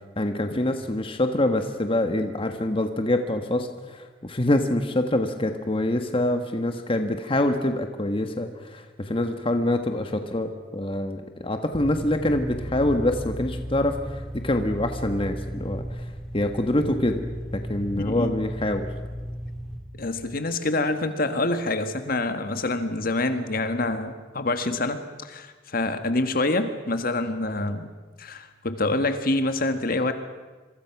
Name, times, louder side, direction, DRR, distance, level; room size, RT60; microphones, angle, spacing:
voice 1, 0.2-16.0 16.3-17.2 17.5-18.9, left 1 dB, 30° left, 6 dB, 1.4 m, -25 dB
sound 1, 11.7-19.8, equal, 5° left, 3.5 m, -35 dB
voice 2, 18.0-18.3 20.0-27.9 28.2-30.1, left 2 dB, 55° left, 8 dB, 1.6 m, -26 dB
27.0 x 23.5 x 6.0 m, 1.3 s
head